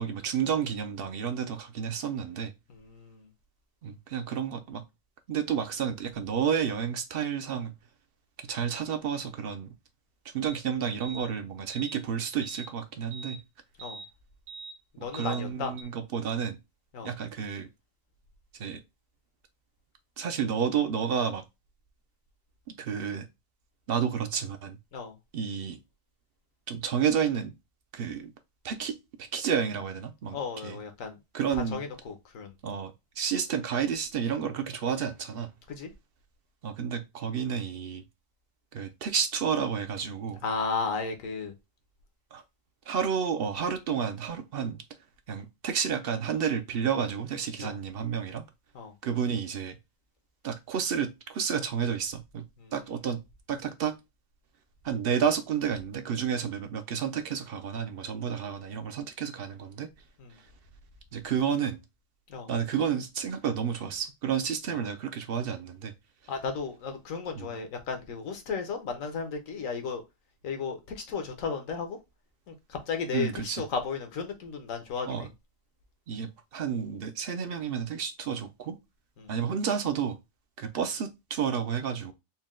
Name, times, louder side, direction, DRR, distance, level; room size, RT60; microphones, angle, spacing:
voice 1, 0.0-2.5 3.8-4.8 5.3-7.7 8.5-9.7 10.2-13.4 15.0-16.6 17.0-17.7 18.5-18.8 20.2-21.4 22.8-23.3 23.9-24.8 25.3-25.8 26.7-27.5 27.9-28.3 28.6-30.8 31.3-31.8 32.6-35.5 36.6-38.0 38.7-40.4 42.3-42.4 42.9-44.8 45.3-48.4 49.0-49.8 50.4-52.4 52.7-53.2 53.5-54.0 54.8-59.9 61.1-61.8 62.5-65.9 67.3-67.5 73.1-73.6 75.1-75.3 76.1-78.8 79.3-80.2 80.6-82.1, right 7 dB, 60° right, 0.6 m, -31 dB
voice 2, 2.7-3.3 13.8-14.0 14.9-15.7 16.9-17.1 24.9-25.1 30.3-31.2 31.5-32.5 35.7-35.9 40.4-41.5 47.6-47.8 48.7-48.9 52.6-52.7 60.2-60.4 62.3-62.5 64.7-64.8 66.3-70.0 70.4-72.0 72.5-75.3 79.2-79.3, left 5 dB, 75° left, 1.3 m, -34 dB
sound 1, 10.5-10.6 11.0-11.3 11.7-12.0 12.4-12.7 13.1-13.4 13.8-14.1 14.5-14.8 15.1-15.4 15.8-15.9, right 4 dB, 85° right, 1.4 m, -43 dB
4.2 x 2.2 x 3.5 m
omnidirectional pair, 1.4 m